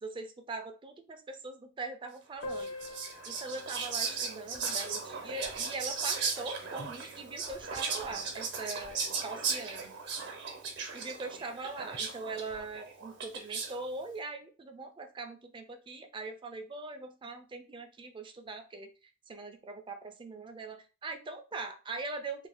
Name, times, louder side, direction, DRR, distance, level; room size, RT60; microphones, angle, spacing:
voice 1, 0.0-2.7 3.3-10.0 10.9-22.5, right 3 dB, 25° right, 6 dB, 0.4 m, -42 dB
Piano, 2.4-7.8 8.0-8.1 8.4-8.5 8.8-8.9 9.7-9.9, left 1 dB, 80° left, 0.6 m, -47 dB
Whispering, 2.5-13.8, right 5 dB, 60° right, 0.8 m, -37 dB
2.6 x 2.3 x 3.4 m, 0.33 s
head